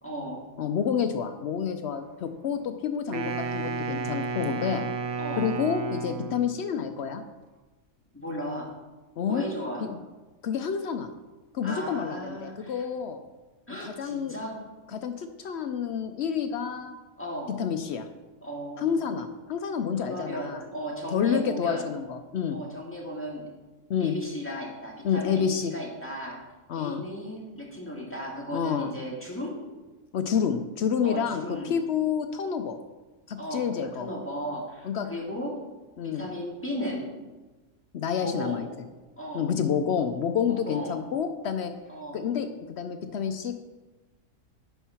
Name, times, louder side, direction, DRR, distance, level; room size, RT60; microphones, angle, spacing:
voice 1, 0.0-0.4 5.2-5.5 8.1-8.7 9.3-9.9 11.6-12.8 13.7-14.6 17.2-17.5 18.4-19.0 20.0-21.9 22.5-23.4 24.0-26.4 26.7-29.6 31.0-31.7 33.4-33.6 33.9-35.6 36.0-37.1 38.2-38.6 39.2-39.5 40.4-41.0 41.9-42.3, equal, 10° left, -4 dB, 1.9 m, -35 dB
voice 2, 0.6-4.9 5.4-7.2 9.2-9.4 9.8-10.0 10.4-11.1 11.5-13.2 13.8-14.3 14.9-17.0 17.6-18.1 18.8-20.6 21.1-22.6 23.9-24.2 25.0-25.7 26.7-27.0 28.5-28.9 30.1-32.8 33.3-34.1 34.8-35.1 36.0-36.3 37.9-38.7 39.3-41.7 42.1-43.5, left 7 dB, 65° left, 8 dB, 0.7 m, -29 dB
Wind instrument woodwind instrument, 3.1-6.6, right 4 dB, 85° right, 1.2 m, -32 dB
10.0 x 4.6 x 5.6 m, 1.2 s
omnidirectional pair, 1.5 m